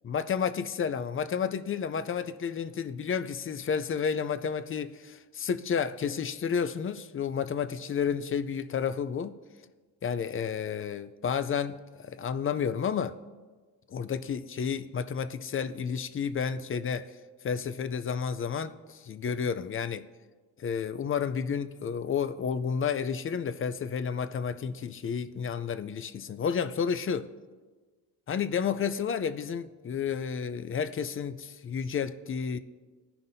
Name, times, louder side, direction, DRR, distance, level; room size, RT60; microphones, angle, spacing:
voice 1, 0.0-9.3 10.0-13.2 13.9-17.1 17.4-20.1 20.6-27.3 28.3-32.6, left 7 dB, 30° left, 0.5 m, -31 dB
14.5 x 5.7 x 2.7 m
supercardioid pair, 60°, 43 cm